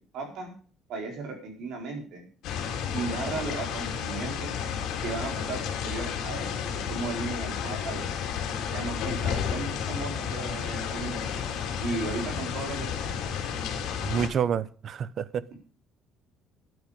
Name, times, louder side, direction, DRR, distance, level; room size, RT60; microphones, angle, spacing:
voice 1, 0.1-0.5 0.9-2.2 2.9-4.5 5.0-8.2 8.7-11.4 11.8-13.1, right 3 dB, 60° right, 4.6 m, -36 dB
sound 1, 2.4-14.3, left 7 dB, 65° left, 3.5 m, -32 dB
voice 2, 14.0-15.4, right 8 dB, 40° right, 0.6 m, -28 dB
13.0 x 9.5 x 5.2 m
cardioid pair, 170°, 0 cm